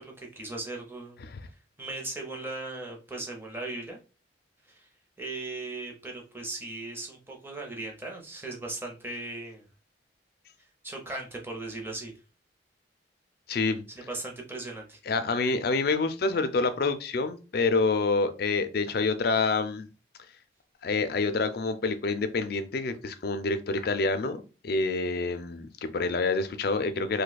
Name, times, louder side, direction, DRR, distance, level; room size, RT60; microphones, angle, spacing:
voice 1, 0.0-1.2 1.8-4.0 4.7-4.9 5.2-9.7 10.8-12.1 14.1-15.0, right 2 dB, 10° right, 0 dB, 0.7 m, -38 dB
voice 2, 13.5-13.8 15.1-19.9 20.8-27.2, left 3 dB, 55° left, 10 dB, 0.4 m, -27 dB
2.7 x 2.3 x 4.1 m, 0.34 s
head